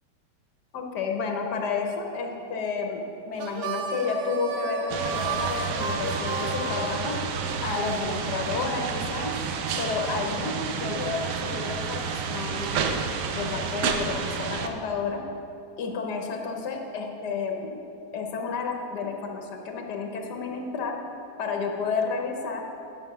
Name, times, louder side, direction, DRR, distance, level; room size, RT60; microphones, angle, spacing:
voice 1, 0.7-7.1 7.6-9.4 9.8-13.0 13.3-15.2 15.8-17.8 18.1-21.0 21.4-22.6, left 5 dB, 75° left, 2 dB, 1.5 m, -31 dB
Harmonica, 3.3-7.6, right 4 dB, 65° right, 1.0 m, -32 dB
sound 1, 4.9-14.7, right 6 dB, 80° right, 1.2 m, -30 dB
9.6 x 5.4 x 6.0 m, 2.8 s
omnidirectional pair, 1.8 m